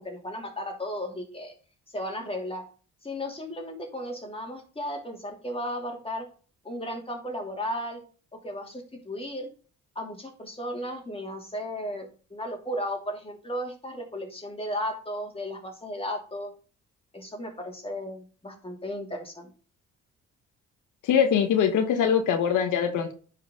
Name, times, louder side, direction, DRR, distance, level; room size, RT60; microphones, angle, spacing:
voice 1, 0.0-1.5 1.9-2.6 3.0-6.3 6.6-8.0 8.4-9.5 9.9-16.5 17.1-19.5, equal, 20° left, 2 dB, 2.7 m, -35 dB
voice 2, 21.0-23.1, left 8 dB, 85° left, 6 dB, 1.3 m, -23 dB
9.9 x 4.9 x 3.7 m, 0.39 s
cardioid pair, 90°, 30 cm